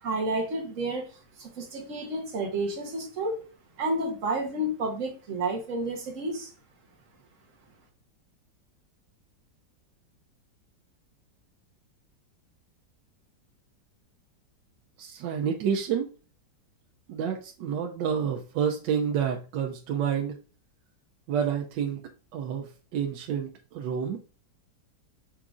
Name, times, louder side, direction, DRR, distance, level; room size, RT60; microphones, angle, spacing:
voice 1, 0.0-1.1 1.4-3.4 3.8-6.5, right 2 dB, 50° right, 3 dB, 1.3 m, -30 dB
voice 2, 15.0-16.1 17.1-20.4 21.3-22.0 22.3-24.2, right 7 dB, 80° right, 2 dB, 1.2 m, -29 dB
5.9 x 3.7 x 2.4 m, 0.35 s
omnidirectional pair, 1.9 m